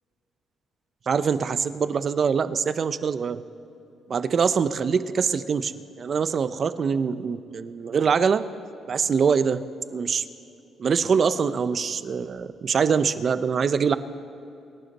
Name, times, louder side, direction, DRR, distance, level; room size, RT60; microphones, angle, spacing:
voice 1, 1.1-3.4 4.1-5.7 6.0-8.5 8.9-9.6 9.9-10.2 10.8-14.0, right 6 dB, 50° right, 14 dB, 0.7 m, -24 dB
27.5 x 11.5 x 4.2 m, 2.7 s
cardioid pair, 90°, 0 cm